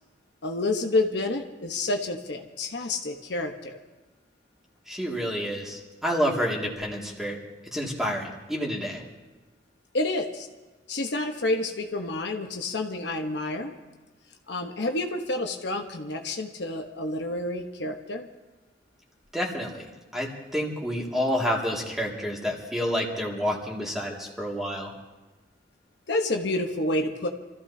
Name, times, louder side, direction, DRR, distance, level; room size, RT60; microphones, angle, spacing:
voice 1, 0.4-3.8 9.9-10.5 10.9-13.7 14.5-18.3 26.1-27.3, left 2 dB, 65° left, 3 dB, 1.1 m, -29 dB
voice 2, 4.9-7.4 7.7-9.0 19.3-19.9 20.1-24.9, equal, ahead, -2 dB, 2.3 m, -29 dB
28.0 x 14.5 x 2.8 m, 1.2 s
head